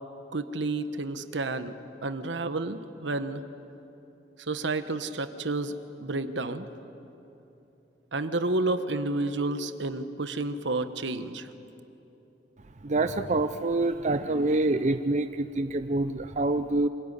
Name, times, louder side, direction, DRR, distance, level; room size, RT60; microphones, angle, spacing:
voice 1, 0.3-1.7 2.0-3.4 4.5-6.7 8.1-11.5, right 2 dB, 75° right, 10 dB, 1.2 m, -30 dB
voice 2, 12.8-16.9, right 2 dB, 40° right, 9 dB, 0.6 m, -26 dB
25.5 x 19.0 x 10.0 m, 3.0 s
head